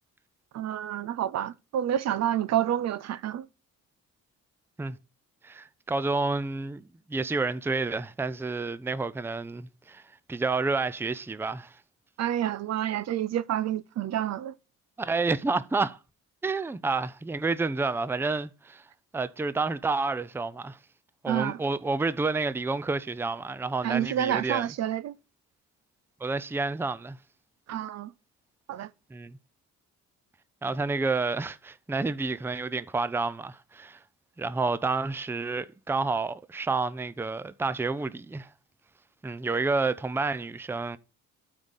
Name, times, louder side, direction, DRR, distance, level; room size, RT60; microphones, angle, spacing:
voice 1, 0.5-3.5 12.2-14.5 21.3-21.6 23.8-25.2 27.7-28.1 28.7-28.9, right 11 dB, 60° right, 0.5 m, -29 dB
voice 2, 5.4-10.0 10.3-11.8 15.0-16.0 16.4-18.8 19.1-20.8 21.2-24.7 26.2-27.2 29.1-29.4 30.6-34.0 34.4-38.5 39.2-41.0, right 3 dB, 10° right, 0.5 m, -29 dB
8.8 x 4.0 x 6.4 m
cardioid pair, 90°, 30 cm